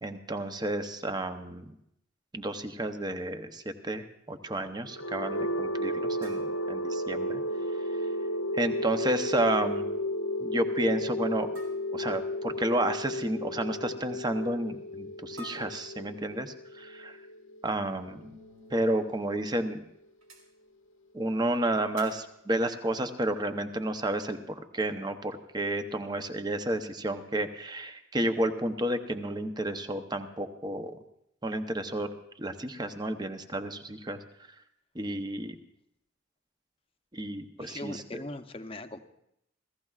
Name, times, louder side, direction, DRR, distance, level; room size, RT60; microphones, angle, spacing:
voice 1, 0.0-1.7 2.3-7.4 8.5-9.9 10.4-11.5 11.9-17.2 17.6-18.3 18.7-19.8 21.1-30.9 31.4-32.1 32.4-34.2 34.9-35.6 37.1-38.0, right 1 dB, 20° right, 8 dB, 0.7 m, -31 dB
sound 1, 4.8-18.7, left 1 dB, 70° left, 0.8 m, -33 dB
sound 2, 6.2-7.6 8.8-9.2 9.5-9.8 10.0-10.1 11.5-12.2 15.4-16.5 18.6-18.7 19.2-19.3 20.2-20.5 22.0-22.4, left 1 dB, 85° right, 2.7 m, -51 dB
sound 3, 17.9-19.9 22.5-22.6, left 4 dB, 40° right, 2.2 m, -57 dB
voice 2, 37.6-39.0, left 2 dB, 25° left, 8 dB, 0.7 m, -40 dB
27.0 x 15.5 x 2.4 m, 0.78 s
head